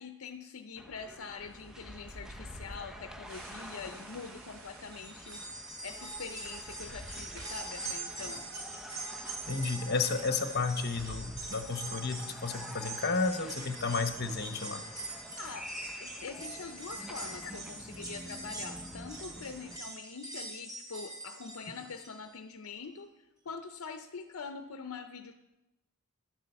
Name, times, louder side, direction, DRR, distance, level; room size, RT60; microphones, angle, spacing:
voice 1, 0.0-8.4 15.4-25.3, left 5 dB, 70° left, 7 dB, 0.6 m, -44 dB
sound 1, 0.8-19.8, equal, ahead, 0.6 m, -49 dB
sound 2, 1.5-9.7 9.9-10.0 10.7-12.0, equal, 65° right, 2.5 m, -51 dB
sound 3, 4.9-22.2 22.6-22.7 23.8-23.9, right 2 dB, 20° right, 3.5 m, -43 dB
voice 2, 9.5-14.9, left 4 dB, 50° left, 8 dB, 1.1 m, -32 dB
11.5 x 7.6 x 6.9 m, 0.99 s
head